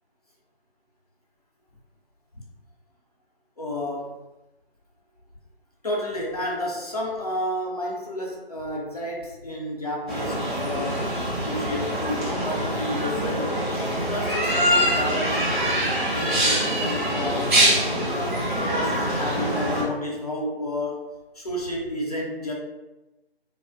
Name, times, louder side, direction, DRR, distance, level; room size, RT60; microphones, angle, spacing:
voice 1, 3.6-4.1 5.8-11.0 11.4-13.7 14.1-15.5 16.1-17.6 18.1-22.5, left 1 dB, 40° left, -2 dB, 0.5 m, -31 dB
sound 1, 10.1-19.8, equal, 50° right, 0.9 m, -24 dB
2.6 x 2.4 x 2.4 m, 1.0 s
figure-of-eight pair, 160°, 32 cm